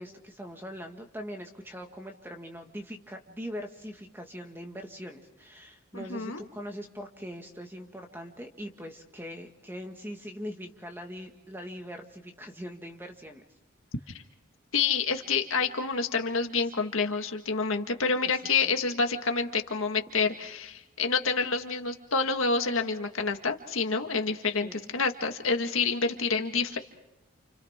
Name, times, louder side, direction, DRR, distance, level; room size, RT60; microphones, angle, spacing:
voice 1, 0.0-13.4 24.6-24.9, equal, 10° right, 4 dB, 1.8 m, -41 dB
voice 2, 5.9-6.4 14.7-26.8, left 4 dB, 70° left, 5 dB, 1.8 m, -28 dB
29.5 x 29.0 x 3.7 m, 0.93 s
head